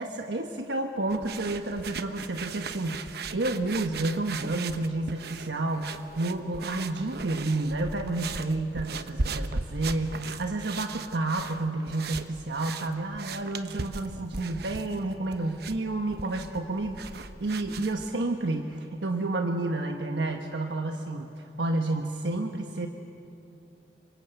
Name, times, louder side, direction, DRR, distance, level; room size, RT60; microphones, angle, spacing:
voice 1, 0.0-22.9, right 2 dB, 85° right, 4 dB, 1.3 m, -30 dB
sound 1, 1.1-18.1, right 4 dB, 65° right, 1.0 m, -38 dB
27.0 x 24.5 x 8.1 m, 2.7 s
head